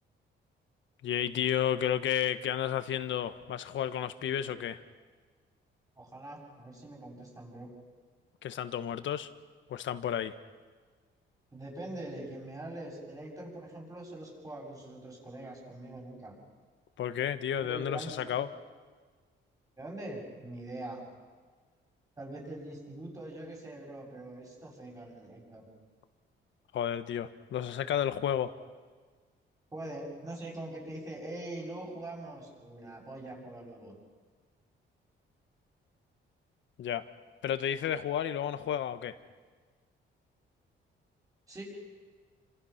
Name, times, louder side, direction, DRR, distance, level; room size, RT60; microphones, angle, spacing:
voice 1, 1.0-4.8 8.4-9.3 9.7-10.3 17.0-18.5 26.7-28.5 36.8-37.0 37.4-39.1, left 10 dB, 70° left, 11 dB, 1.4 m, -32 dB
voice 2, 6.0-7.7 11.5-16.3 17.6-18.3 19.8-21.0 22.2-25.7 29.7-34.0 41.5-41.6, right 1 dB, 15° right, -1 dB, 7.2 m, -43 dB
29.5 x 26.5 x 5.9 m, 1.5 s
cardioid pair, 150°, 20 cm